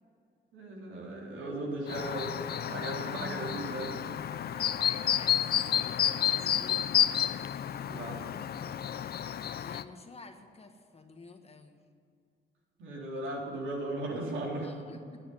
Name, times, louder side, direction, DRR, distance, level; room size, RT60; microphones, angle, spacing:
voice 1, 0.5-4.0 7.8-8.3 12.8-14.7, right 1 dB, 80° right, -2 dB, 3.7 m, -37 dB
Chirp tweet, 1.9-9.8, left 10 dB, 55° left, 0.5 m, -30 dB
voice 2, 4.4-7.0 9.3-11.8 14.6-15.3, left 3 dB, 30° left, 5 dB, 1.4 m, -51 dB
9.9 x 9.7 x 9.9 m, 2.4 s
cardioid pair, 90°, 20 cm